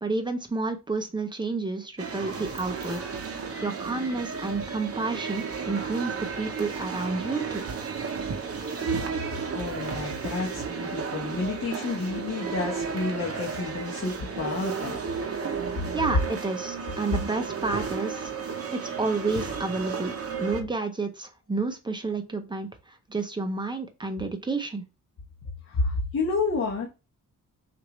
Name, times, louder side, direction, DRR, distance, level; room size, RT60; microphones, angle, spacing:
voice 1, 0.0-3.0 3.6-7.6 15.9-18.3 18.7-24.8, right 3 dB, 15° right, 6 dB, 0.6 m, -30 dB
sound 1, 2.0-20.6, right 5 dB, 45° right, 0.8 m, -33 dB
voice 2, 9.2-15.0 25.6-26.9, left 3 dB, 45° left, -2 dB, 1.0 m, -30 dB
6.3 x 2.6 x 3.0 m, 0.28 s
wide cardioid pair, 160°, 32 cm